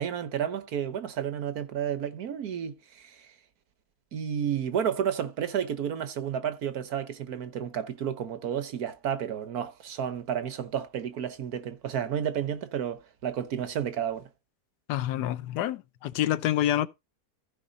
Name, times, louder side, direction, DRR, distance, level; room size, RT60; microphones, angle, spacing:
voice 1, 0.0-3.3 4.1-14.3, right 8 dB, 70° right, 1.5 m, -31 dB
voice 2, 14.9-16.9, left 12 dB, 90° left, 1.3 m, -27 dB
14.0 x 5.3 x 4.0 m
omnidirectional pair, 1.7 m